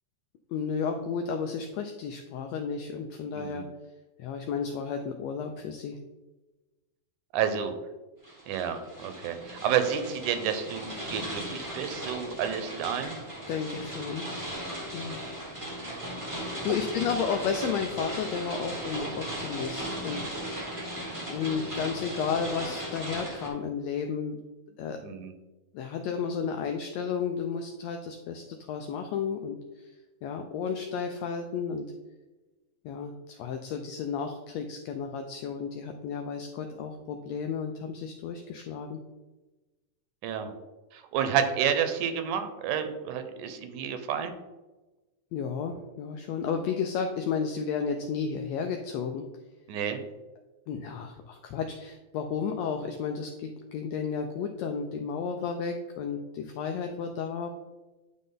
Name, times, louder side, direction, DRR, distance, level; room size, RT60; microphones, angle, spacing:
voice 1, 0.5-3.6 4.2-6.0 13.5-14.3 14.9-15.2 16.3-20.3 21.3-24.4 24.8-25.0 25.7-29.9 30.2-31.9 32.8-39.0 45.3-49.2 50.7-57.5, left 6 dB, 90° left, 5 dB, 1.5 m, -32 dB
voice 2, 3.3-3.7 7.3-7.7 8.5-13.2 25.0-25.3 40.2-40.5 40.9-44.3 49.7-50.0, right 8 dB, 80° right, 8 dB, 2.1 m, -30 dB
sound 1, 8.2-23.5, right 1 dB, 30° right, 0.5 m, -37 dB
9.3 x 3.9 x 3.8 m, 1.1 s
omnidirectional pair, 3.6 m